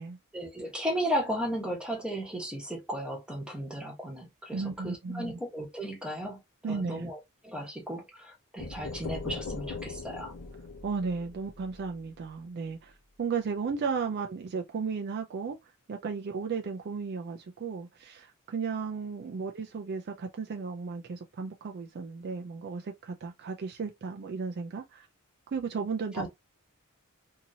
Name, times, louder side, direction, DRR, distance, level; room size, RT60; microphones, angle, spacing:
voice 1, 0.3-6.4 6.7-10.3 26.2-26.3, equal, 5° right, 1.0 m, -35 dB
voice 2, 4.5-5.4 6.6-7.0 10.8-12.9 13.2-15.6 15.9-25.1 25.5-26.3, right 5 dB, 50° right, 0.4 m, -34 dB
sound 1, 8.6-12.3, left 3 dB, 85° left, 0.8 m, -40 dB
2.8 x 2.7 x 2.7 m
head